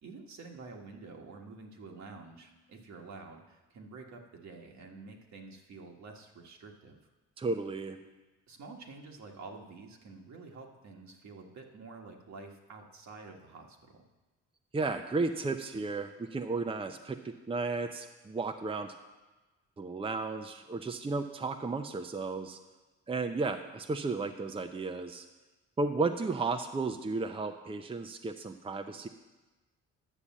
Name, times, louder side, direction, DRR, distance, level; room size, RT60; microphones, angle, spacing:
voice 1, 0.0-7.0 8.5-14.0, right 3 dB, 65° right, 1 dB, 1.7 m, -49 dB
voice 2, 7.4-8.0 14.7-18.9 19.8-22.6 23.1-25.2 25.8-29.1, right 3 dB, 20° right, 6 dB, 0.6 m, -34 dB
10.0 x 6.7 x 7.4 m, 1.2 s
cardioid pair, 90°, 30 cm